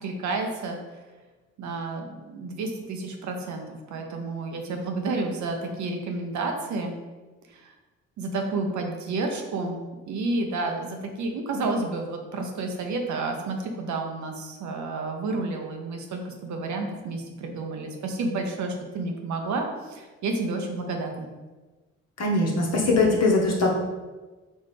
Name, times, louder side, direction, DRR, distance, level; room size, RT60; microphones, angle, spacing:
voice 1, 0.0-0.8 1.6-7.0 7.5-7.7 8.2-21.3, right 3 dB, 55° right, 3 dB, 0.7 m, -30 dB
voice 2, 22.2-23.7, left 2 dB, 50° left, -2 dB, 1.2 m, -21 dB
4.2 x 3.0 x 3.3 m, 1.2 s
hypercardioid pair, 45°, 34 cm